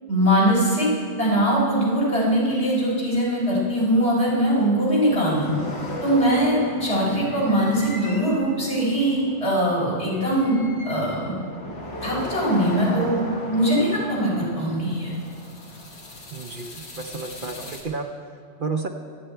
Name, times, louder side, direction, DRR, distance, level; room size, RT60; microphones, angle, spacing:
voice 1, 0.1-0.9 1.2-5.6 6.0-11.3 12.0-15.1, equal, 65° left, -6 dB, 4.5 m, -21 dB
sound 1, 5.0-17.8, left 1 dB, 85° left, 2.2 m, -37 dB
voice 2, 16.3-18.1 18.6-18.9, right 4 dB, 50° right, 4 dB, 0.9 m, -31 dB
24.5 x 8.7 x 4.5 m, 2.2 s
omnidirectional pair, 1.2 m